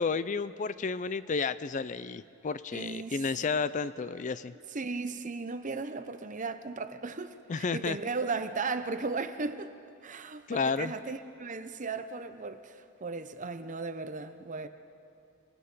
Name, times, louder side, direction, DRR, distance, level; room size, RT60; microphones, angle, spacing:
voice 1, 0.0-4.5 7.5-8.0 10.5-10.9, left 5 dB, 35° left, 0.4 m, -31 dB
voice 2, 2.7-3.3 4.7-9.7 10.0-14.7, right 4 dB, 35° right, 0.8 m, -36 dB
29.5 x 18.5 x 5.5 m
head